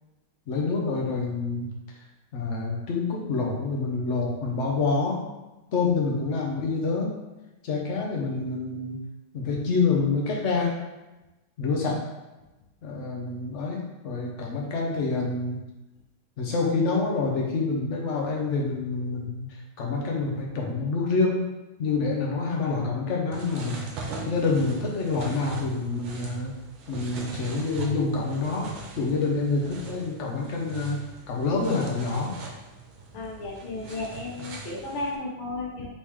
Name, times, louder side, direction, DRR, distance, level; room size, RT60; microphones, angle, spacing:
voice 1, 0.5-1.7 2.3-5.2 5.7-7.2 7.6-9.0 9.3-10.7 11.6-12.0 12.8-15.6 16.4-19.5 19.8-21.4 21.8-26.5 26.9-28.7 28.9-31.0 31.3-32.3, left 4 dB, 60° left, -1 dB, 0.7 m, -27 dB
sound 1, 23.3-35.2, right 3 dB, 80° right, 1.5 m, -39 dB
voice 2, 33.1-35.9, left 2 dB, 85° left, -3 dB, 1.5 m, -34 dB
4.3 x 3.7 x 3.1 m, 1.0 s
omnidirectional pair, 2.2 m